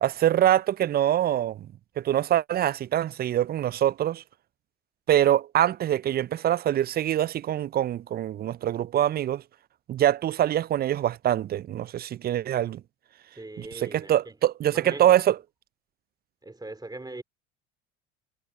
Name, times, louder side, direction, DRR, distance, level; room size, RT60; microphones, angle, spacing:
voice 1, 0.0-1.7 2.0-4.2 5.1-9.4 9.9-12.8 13.6-15.4, right 11 dB, 30° right, 0.4 m, -24 dB
voice 2, 13.4-14.3 14.7-15.1 16.4-17.2, right 2 dB, 10° right, 3.0 m, -40 dB
hypercardioid pair, 65°, 35 cm